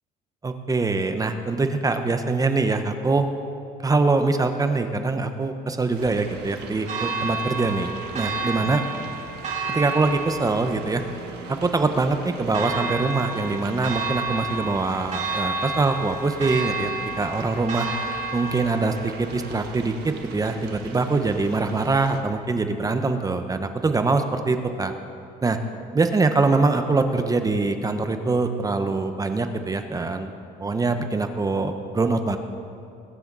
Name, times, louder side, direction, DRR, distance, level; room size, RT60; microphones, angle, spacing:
voice 1, 0.4-3.3 3.8-8.8 9.7-11.0 11.5-16.9 17.2-17.9 18.3-24.9 25.4-25.6 25.9-30.3 30.6-32.4, right 3 dB, 20° right, 7 dB, 1.0 m, -23 dB
sound 1, 5.9-22.2, right 5 dB, 80° right, 1.5 m, -42 dB
Church bell, 6.9-20.9, right 3 dB, 45° right, 2.9 m, -31 dB
21.5 x 10.0 x 4.0 m, 2.5 s
cardioid pair, 110°, 17 cm